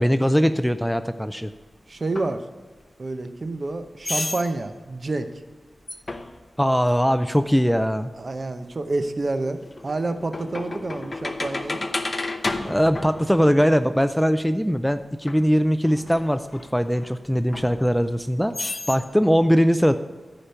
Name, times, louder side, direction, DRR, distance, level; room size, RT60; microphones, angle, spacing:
voice 1, 0.0-1.5 6.6-8.1 12.6-18.5 18.9-20.0, equal, ahead, 10 dB, 0.4 m, -21 dB
voice 2, 1.9-2.4 3.0-5.3 8.2-11.9, right 2 dB, 45° right, 8 dB, 0.8 m, -28 dB
sound 1, 2.2-2.3 4.0-4.5 5.9-6.4 8.5-8.6 9.2-13.8 15.3-15.4 15.8-17.1 17.5-18.2 18.5-19.0, left 2 dB, 35° left, 0.8 m, -32 dB
14.5 x 5.0 x 5.7 m, 1.3 s
wide cardioid pair, 100°, 0 cm